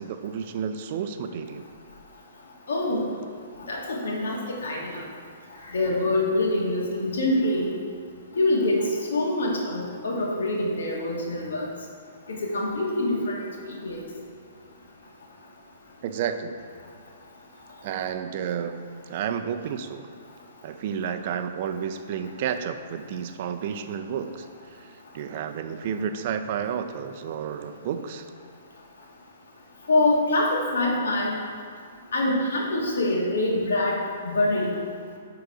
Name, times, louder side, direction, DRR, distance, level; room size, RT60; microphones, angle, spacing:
voice 1, 0.0-1.7 16.0-16.6 17.8-20.1 20.6-24.5 24.7-28.3, right 7 dB, 50° right, 8 dB, 0.5 m, -31 dB
voice 2, 2.7-3.0 3.7-5.0 5.7-7.7 8.4-11.7 12.3-13.4 13.7-14.0 29.9-31.3 32.1-34.0 34.3-34.8, left 2 dB, 85° left, -2 dB, 1.9 m, -25 dB
9.5 x 3.9 x 4.8 m, 2.2 s
hypercardioid pair, 145°, 0 cm